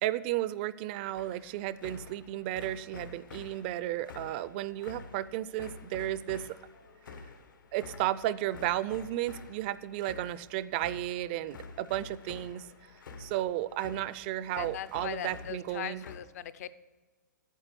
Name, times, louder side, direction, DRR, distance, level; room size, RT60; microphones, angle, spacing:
voice 1, 0.0-6.5 7.7-12.7 13.2-16.0, right 14 dB, 30° right, 17 dB, 0.4 m, -33 dB
sound 1, 1.1-16.2, left 4 dB, 85° left, 1.5 m, -49 dB
voice 2, 14.6-16.8, left 11 dB, 50° left, 16 dB, 0.6 m, -40 dB
9.0 x 7.5 x 6.7 m, 1.3 s
hypercardioid pair, 150°, 10 cm